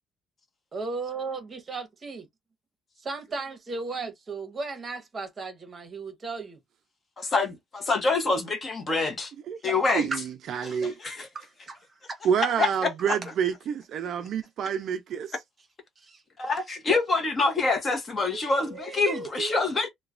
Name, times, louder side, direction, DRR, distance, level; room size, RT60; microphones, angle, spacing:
voice 1, 0.7-2.3 3.0-6.6 10.1-10.2 11.3-11.5 16.0-16.2 18.3-19.6, right 4 dB, 25° right, 1.0 m, -35 dB
voice 2, 7.2-9.3 9.6-10.1 10.6-11.3 12.6-13.2 16.4-19.9, left 3 dB, 30° left, 0.8 m, -26 dB
voice 3, 9.9-11.0 12.2-15.3, right 8 dB, 50° right, 0.3 m, -28 dB
3.0 x 2.1 x 2.4 m
cardioid pair, 150°, 0 cm